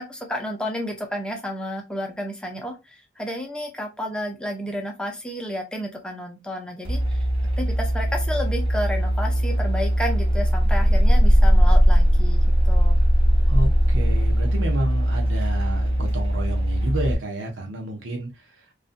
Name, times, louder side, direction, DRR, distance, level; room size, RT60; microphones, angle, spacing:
voice 1, 0.0-7.2 7.6-13.0, equal, 5° left, 0.6 m, -31 dB
sound 1, 6.9-17.1, equal, 30° right, 0.9 m, -19 dB
voice 2, 13.5-18.3, right 1 dB, 90° right, 0.7 m, -30 dB
2.6 x 2.4 x 2.5 m
head